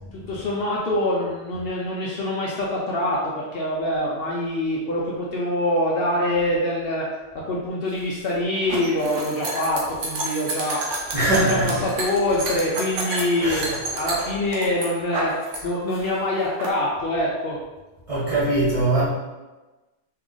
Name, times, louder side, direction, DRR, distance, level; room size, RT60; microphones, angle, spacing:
voice 1, 0.1-7.1 7.3-10.8 11.2-13.6 14.0-15.3 15.6-17.6, left 1 dB, 60° left, -4 dB, 0.7 m, -25 dB
sound 1, 7.9-15.6 15.9-16.7, right 2 dB, 85° right, 1.0 m, -30 dB
voice 2, 11.1-11.8 13.4-14.0 18.1-19.1, right 2 dB, 30° right, -9 dB, 0.9 m, -22 dB
2.7 x 2.4 x 3.7 m, 1.2 s
omnidirectional pair, 1.2 m